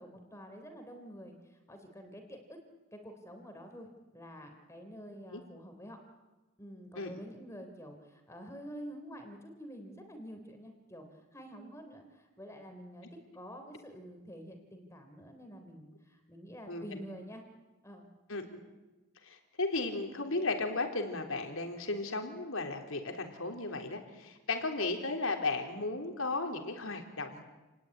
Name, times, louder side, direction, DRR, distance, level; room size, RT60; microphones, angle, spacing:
voice 1, 0.0-2.6 2.9-3.9 4.1-6.0 6.6-13.1 13.3-17.4 17.8-18.1, equal, 15° left, 5 dB, 3.6 m, -48 dB
voice 2, 16.7-17.0 18.3-18.6 19.2-27.4, left 3 dB, 65° left, 4 dB, 4.1 m, -35 dB
29.0 x 20.0 x 9.8 m, 1.2 s
head